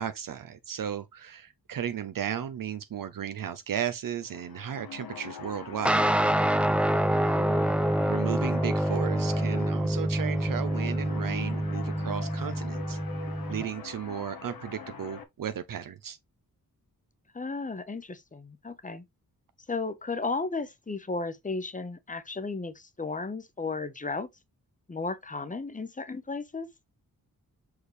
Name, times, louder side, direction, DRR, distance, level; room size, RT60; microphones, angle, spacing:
voice 1, 0.0-6.1 8.1-13.0 13.5-16.2, right 9 dB, 70° right, 0.7 m, -35 dB
sound 1, 4.1-15.2, left 6 dB, 85° left, 1.3 m, -43 dB
sound 2, 5.8-13.6, right 1 dB, 5° right, 0.5 m, -26 dB
voice 2, 7.2-7.9 17.3-19.0 19.7-24.3 24.9-26.7, left 3 dB, 20° left, 0.8 m, -34 dB
6.4 x 4.7 x 3.2 m
wide cardioid pair, 145°, 35 cm